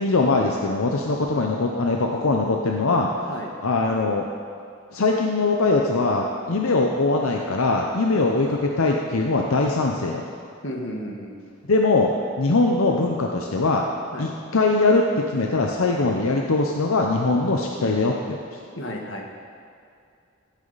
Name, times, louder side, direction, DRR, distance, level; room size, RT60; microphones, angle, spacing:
voice 1, 0.0-3.3 3.6-4.3 4.9-10.2 11.7-12.1 12.4-13.8 14.2-18.4, left 3 dB, 85° left, 1 dB, 0.7 m, -21 dB
voice 2, 10.6-11.4 14.1-14.3 17.8-18.0 18.8-19.3, equal, 60° left, 1 dB, 1.4 m, -33 dB
15.0 x 8.3 x 4.1 m, 2.4 s
head